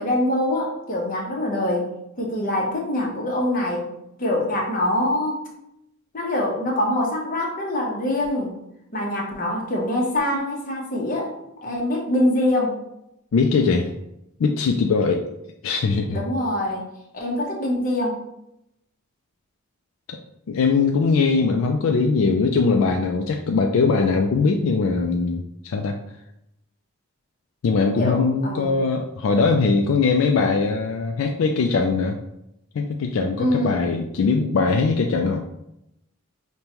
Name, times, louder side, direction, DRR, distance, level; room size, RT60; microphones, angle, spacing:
voice 1, 0.0-1.9 2.2-3.9 4.2-5.4 6.1-8.5 8.9-11.3 11.6-12.7 16.1-18.1 28.0-28.8 33.4-33.8, left 1 dB, 40° left, -1 dB, 0.8 m, -24 dB
voice 2, 13.3-13.9 14.4-15.3 15.6-16.2 20.1-20.2 20.5-26.0 27.6-32.2 32.7-35.5, left 4 dB, 75° left, 3 dB, 0.3 m, -21 dB
5.2 x 2.2 x 2.9 m, 0.83 s
head